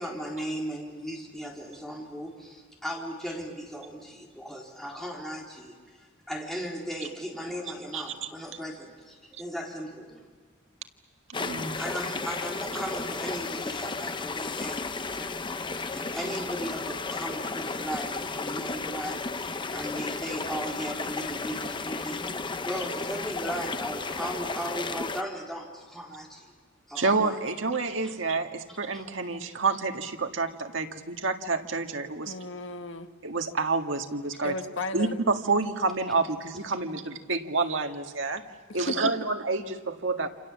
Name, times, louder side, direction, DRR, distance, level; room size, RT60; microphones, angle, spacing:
voice 1, 0.0-10.2 11.8-26.5 26.9-27.4 28.7-29.0, equal, ahead, -2 dB, 4.0 m, -37 dB
voice 2, 7.9-8.3 11.4-11.8 16.2-16.3 27.0-32.3 33.2-34.6 34.9-38.4 38.7-40.3, right 3 dB, 85° right, 5 dB, 1.8 m, -28 dB
sound 1, 11.3-25.2, left 3 dB, 25° left, 0.8 m, -34 dB
voice 3, 32.2-33.1 34.4-35.2 38.7-39.1, left 2 dB, 85° left, 7 dB, 1.5 m, -34 dB
28.0 x 28.0 x 7.4 m, 1.5 s
head